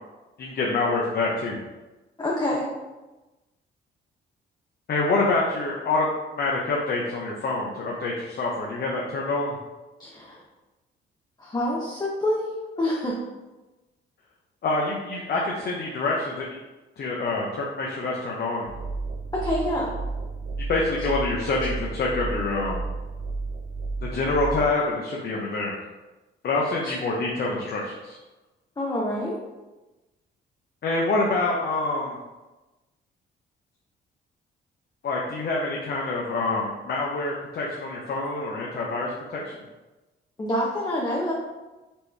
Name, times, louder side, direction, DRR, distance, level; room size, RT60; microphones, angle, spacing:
voice 1, 0.4-1.6 4.9-9.6 14.6-16.6 17.0-18.7 20.7-22.8 24.0-25.7 26.4-28.2 30.8-32.2 35.0-39.4, left 3 dB, 55° left, -3 dB, 0.7 m, -26 dB
voice 2, 2.2-2.7 10.0-10.4 11.4-13.2 19.3-19.9 26.8-26.9 28.8-29.4 40.4-41.3, left 1 dB, 20° left, -3 dB, 0.7 m, -27 dB
sound 1, 18.6-24.7, right 3 dB, 45° right, 0.4 m, -32 dB
4.3 x 2.9 x 3.3 m, 1.1 s
cardioid pair, 90°, 20 cm